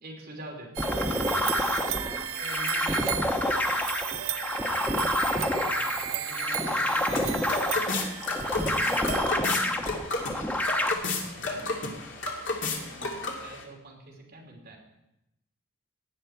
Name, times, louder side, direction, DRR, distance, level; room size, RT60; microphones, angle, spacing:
voice 1, 0.0-0.9 2.4-3.2 5.6-7.1 11.0-11.8 12.8-13.0 13.4-14.8, right 1 dB, 50° right, 0 dB, 3.0 m, -45 dB
sound 1, 0.8-10.9, left 1 dB, 10° left, 0.9 m, -28 dB
sound 2, 0.8-9.8, right 11 dB, 85° right, 0.7 m, -35 dB
voice 2, 1.9-2.3 4.6-5.0 8.8-10.2 12.9-13.4, equal, 20° right, -4 dB, 2.3 m, -46 dB
sound 3, 6.5-13.6, left 3 dB, 60° left, 2.5 m, -33 dB
17.0 x 10.0 x 4.5 m, 0.87 s
head